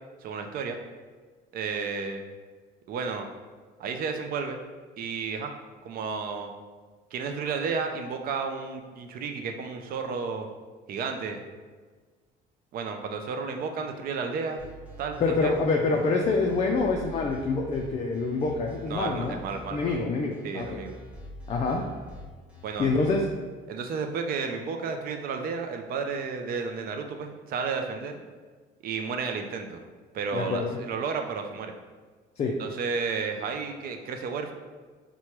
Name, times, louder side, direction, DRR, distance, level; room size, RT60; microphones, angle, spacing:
voice 1, 0.2-0.8 1.5-2.2 2.9-3.3 3.8-4.6 5.0-5.5 5.8-6.5 7.1-10.5 10.9-11.4 12.7-14.6 15.0-15.6 18.9-20.0 20.4-20.9 22.6-22.9 23.7-28.2 28.8-29.8 30.1-31.7 32.6-34.5, right 5 dB, 50° right, 4 dB, 0.5 m, -32 dB
sound 1, 14.6-23.3, equal, 5° right, 0.9 m, -45 dB
voice 2, 15.2-19.4 19.7-20.8 21.5-21.8 22.8-23.2 30.3-30.8 32.4-32.5, left 3 dB, 35° left, 0 dB, 0.4 m, -26 dB
4.4 x 2.2 x 2.9 m, 1.4 s
cardioid pair, 105°, 19 cm